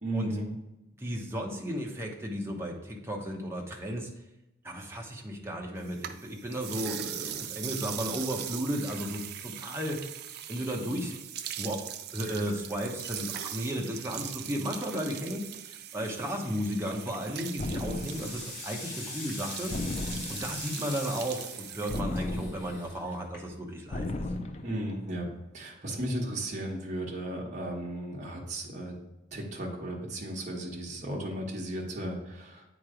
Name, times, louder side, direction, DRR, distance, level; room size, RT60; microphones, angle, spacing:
voice 1, 0.0-0.5 24.6-25.3 25.5-29.0 29.3-32.6, right 1 dB, 40° right, -2 dB, 1.2 m, -35 dB
voice 2, 1.0-4.1 4.6-10.1 10.5-11.2 11.6-11.8 12.1-19.8 20.0-24.1, equal, 15° right, 0 dB, 0.9 m, -34 dB
sound 1, 5.8-22.0, right 10 dB, 55° right, 0.4 m, -41 dB
sound 2, 16.7-17.1 17.5-23.8, left 2 dB, 55° left, 2.0 m, -43 dB
sound 3, 17.6-18.5 19.7-20.7 21.9-22.9 23.9-24.8, left 2 dB, 35° left, 0.4 m, -34 dB
8.7 x 3.1 x 4.9 m, 0.93 s
head